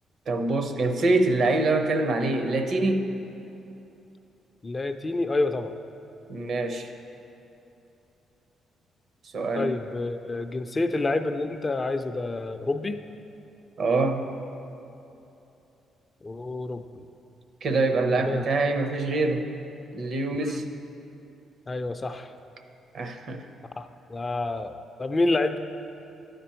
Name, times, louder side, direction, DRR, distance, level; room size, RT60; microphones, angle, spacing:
voice 1, 0.3-3.1 6.3-6.9 9.3-9.7 13.8-14.2 17.6-19.5 19.9-20.7 22.9-23.5, right 2 dB, 55° right, 6 dB, 0.7 m, -25 dB
voice 2, 4.6-5.7 9.6-13.0 16.2-17.0 18.2-18.4 20.3-20.6 21.7-22.3 23.8-24.7 25.0-25.6, left 2 dB, 25° left, 8 dB, 0.4 m, -28 dB
12.5 x 5.2 x 4.4 m, 2.9 s
cardioid pair, 90°, 0 cm